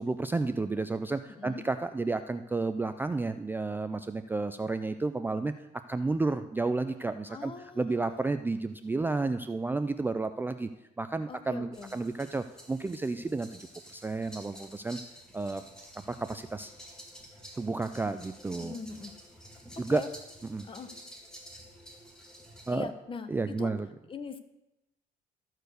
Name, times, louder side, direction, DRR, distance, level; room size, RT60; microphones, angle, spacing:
voice 1, 0.0-5.5 5.9-10.7 11.0-15.0 15.3-15.6 16.1-16.7 17.6-18.8 19.8-20.0 20.4-20.7 22.7-22.9 23.3-23.9, right 3 dB, 10° right, 9 dB, 0.3 m, -31 dB
voice 2, 1.3-1.6 7.3-8.3 11.3-12.0 18.6-19.1 19.9-20.1 20.6-20.9 22.7-23.7 24.1-24.4, left 5 dB, 30° left, 10 dB, 0.9 m, -42 dB
sound 1, 11.7-22.8, equal, 5° left, 1.8 m, -51 dB
13.5 x 4.6 x 6.5 m, 0.92 s
cardioid pair, 110°, 17 cm